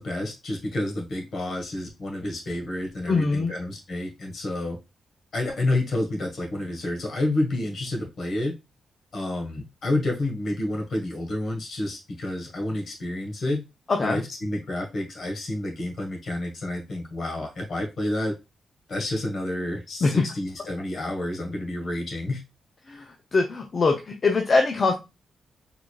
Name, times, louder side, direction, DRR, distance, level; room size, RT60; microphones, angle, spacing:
voice 1, 0.0-4.8 5.3-8.5 9.1-13.6 14.0-18.4 18.9-22.4, left 1 dB, 55° left, 2 dB, 1.7 m, -29 dB
voice 2, 3.1-3.5 13.9-14.2 20.0-20.3 22.9-24.9, left 3 dB, 40° left, 3 dB, 0.6 m, -23 dB
4.7 x 3.9 x 2.3 m, 0.25 s
wide cardioid pair, 130°, 0 cm